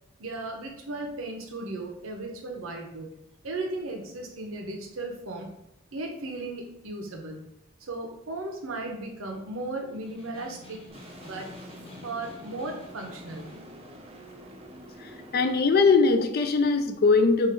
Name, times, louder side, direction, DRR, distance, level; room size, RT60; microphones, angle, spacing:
voice 1, 0.2-3.1 3.4-5.5 5.9-7.4 7.8-10.8 11.2-11.5 12.0-13.5, right 2 dB, 80° right, 2 dB, 0.8 m, -36 dB
Snare drum, 9.9-13.7, left 2 dB, 25° left, 0.8 m, -49 dB
sound 1, 10.9-15.9, equal, 30° right, 0.6 m, -46 dB
voice 2, 15.0-17.5, left 4 dB, 45° left, 7 dB, 0.4 m, -21 dB
3.7 x 2.5 x 4.5 m, 0.82 s
head